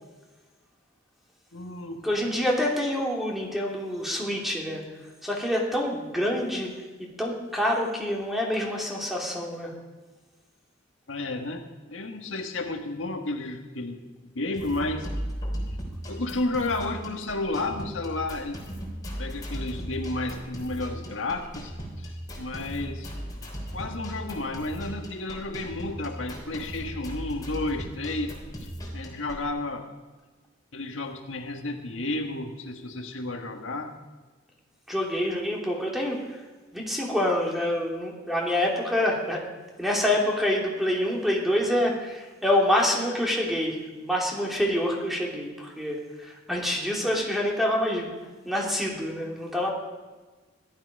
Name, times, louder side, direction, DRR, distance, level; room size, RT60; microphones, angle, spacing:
voice 1, 1.5-2.0 11.1-15.1 16.1-18.6 19.2-23.1 23.7-28.4 28.9-29.9 30.7-33.9, left 2 dB, 75° left, 4 dB, 1.6 m, -32 dB
voice 2, 2.0-4.8 5.2-6.7 7.2-9.7 34.9-36.4 36.7-39.4 39.8-48.1 48.4-49.7, left 1 dB, ahead, -2 dB, 3.0 m, -26 dB
sound 1, 14.5-29.5, equal, 20° left, 3.5 m, -37 dB
17.5 x 12.5 x 5.3 m, 1.3 s
head